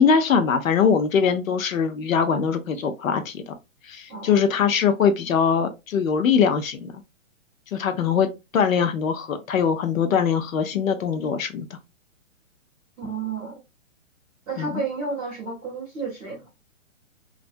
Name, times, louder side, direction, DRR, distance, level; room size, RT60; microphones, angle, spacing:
voice 1, 0.0-3.5 3.9-6.9 7.7-11.7 14.6-14.7, left 6 dB, 85° left, 0.7 m, -22 dB
voice 2, 4.1-4.4 13.0-13.6 14.5-16.5, right 4 dB, 5° right, 0.5 m, -31 dB
2.5 x 2.2 x 2.4 m
hypercardioid pair, 160°, 40 cm